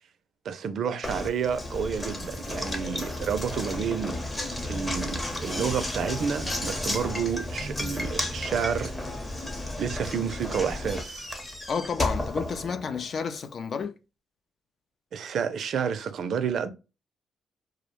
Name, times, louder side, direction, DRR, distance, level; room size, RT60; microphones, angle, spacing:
voice 1, 0.4-4.2 4.7-9.1 9.8-11.3 15.1-16.7, right 7 dB, 65° right, 0.4 m, -30 dB
Knock, 1.0-13.2, left 1 dB, 15° left, 0.7 m, -33 dB
voice 2, 11.7-13.9, left 6 dB, 50° left, 0.3 m, -30 dB
2.3 x 2.0 x 3.0 m
cardioid pair, 90°, 0 cm